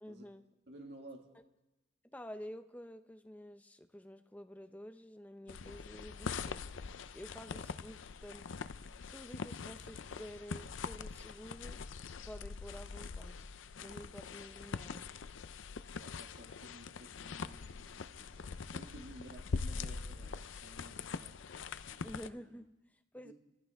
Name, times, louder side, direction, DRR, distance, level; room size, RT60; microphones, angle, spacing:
voice 1, 0.0-0.4 2.1-6.7 7.1-8.5 9.1-11.8 12.2-13.4 13.8-15.1 22.0-23.3, equal, 10° left, 8 dB, 0.6 m, -50 dB
voice 2, 0.7-1.3 16.0-21.4 21.9-22.2 23.2-23.3, right 1 dB, 65° right, 1 dB, 1.8 m, -54 dB
sound 1, 5.5-22.3, left 5 dB, 90° left, 0.5 m, -43 dB
25.5 x 15.0 x 3.5 m, 1.0 s
head